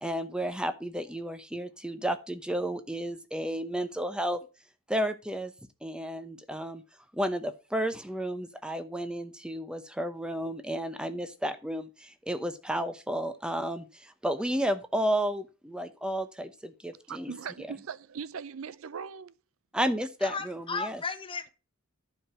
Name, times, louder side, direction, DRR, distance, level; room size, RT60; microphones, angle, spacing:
voice 1, 0.0-4.4 4.9-5.5 5.8-6.8 7.1-17.3 19.7-21.0, equal, 5° right, 0.8 m, -32 dB
voice 2, 17.1-19.3, right 6 dB, 85° right, 0.5 m, -40 dB
voice 3, 20.2-21.5, left 4 dB, 25° left, 1.0 m, -35 dB
11.0 x 4.8 x 6.1 m
head